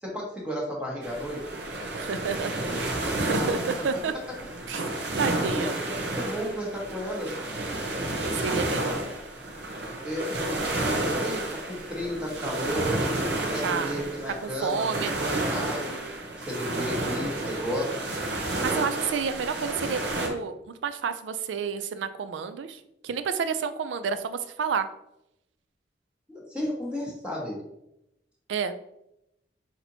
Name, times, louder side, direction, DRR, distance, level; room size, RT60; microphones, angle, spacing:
voice 1, 0.0-1.5 3.3-3.5 3.8-3.9 5.5-7.4 10.0-13.0 13.4-16.0 16.5-18.0 26.3-27.6, equal, 5° right, -4 dB, 1.2 m, -33 dB
sound 1, 1.0-20.3, right 1 dB, 65° right, 0.7 m, -31 dB
voice 2, 1.9-4.1 4.7-4.9 5.2-5.7 8.4-8.9 13.6-13.9 14.4-15.1 18.5-24.9 28.5-28.7, right 6 dB, 85° right, 11 dB, 0.4 m, -30 dB
5.9 x 2.8 x 2.7 m, 0.82 s
head